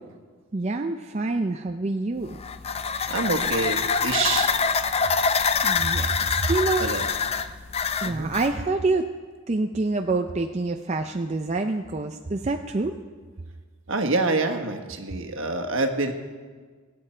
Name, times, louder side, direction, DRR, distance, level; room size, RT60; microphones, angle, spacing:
voice 1, 0.5-2.4 5.6-6.9 8.0-9.1 9.5-13.0, right 3 dB, 30° right, 5 dB, 0.4 m, -26 dB
sound 1, 2.3-8.5, left 5 dB, 30° left, 0.4 m, -25 dB
voice 2, 3.1-4.5 6.8-7.1 8.0-8.3 13.9-16.1, right 3 dB, 65° right, 5 dB, 1.3 m, -26 dB
24.0 x 8.6 x 4.4 m, 1.5 s
head